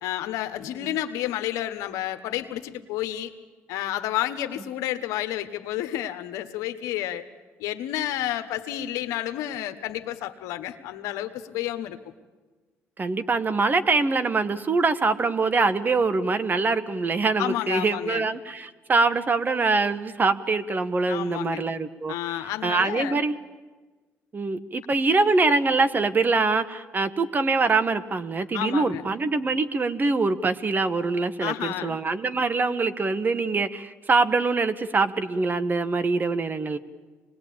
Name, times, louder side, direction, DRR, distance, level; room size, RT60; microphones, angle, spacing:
voice 1, 0.0-3.3 3.7-7.2 7.6-12.0 17.4-18.3 21.1-21.6 22.1-23.2 28.5-29.0 31.4-32.0, left 13 dB, 85° left, 8 dB, 1.3 m, -30 dB
voice 2, 13.0-22.1 22.6-23.4 24.3-36.8, right 3 dB, 35° right, 11 dB, 1.3 m, -24 dB
25.5 x 20.0 x 8.6 m, 1.3 s
supercardioid pair, 70°, 6 cm